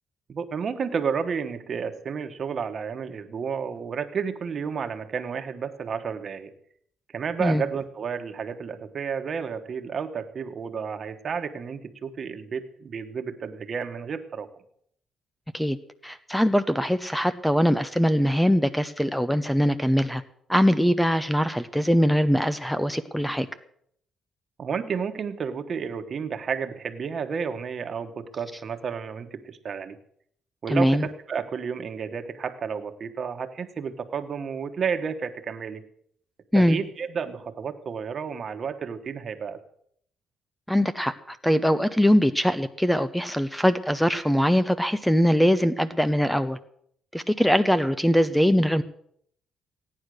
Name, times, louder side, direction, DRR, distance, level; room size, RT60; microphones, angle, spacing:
voice 1, 0.3-6.5 7.1-14.6 24.6-30.0 30.6-35.8 36.5-39.6, right 6 dB, 50° right, 8 dB, 1.4 m, -31 dB
voice 2, 16.0-20.2 20.5-23.5 30.7-31.1 36.5-36.8 40.7-46.6 47.1-48.8, equal, 5° left, 14 dB, 0.7 m, -22 dB
16.0 x 9.8 x 6.5 m, 0.67 s
cardioid pair, 90°, 0 cm